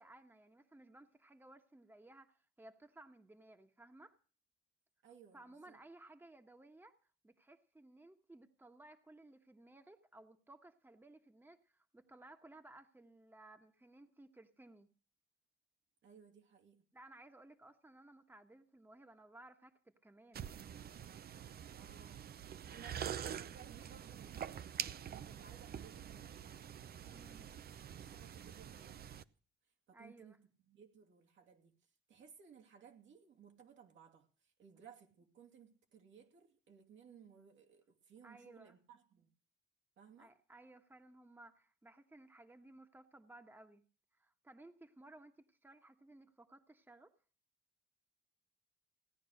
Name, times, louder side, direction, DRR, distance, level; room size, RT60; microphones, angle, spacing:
voice 1, 0.0-4.2 5.3-6.9 7.2-14.9 16.9-20.5 27.1-27.6 29.9-30.4 38.2-38.8 40.2-43.8 44.1-47.1, right 2 dB, 10° right, 1.4 m, -59 dB
voice 2, 5.0-5.8 16.0-16.8 21.7-22.3 22.7-26.4 28.0-29.3 29.9-31.8 32.1-39.3 40.0-40.3, right 7 dB, 70° right, 2.6 m, -60 dB
sound 1, 20.3-29.2, right 9 dB, 50° right, 0.7 m, -46 dB
17.0 x 9.9 x 6.5 m
cardioid pair, 90°, 20 cm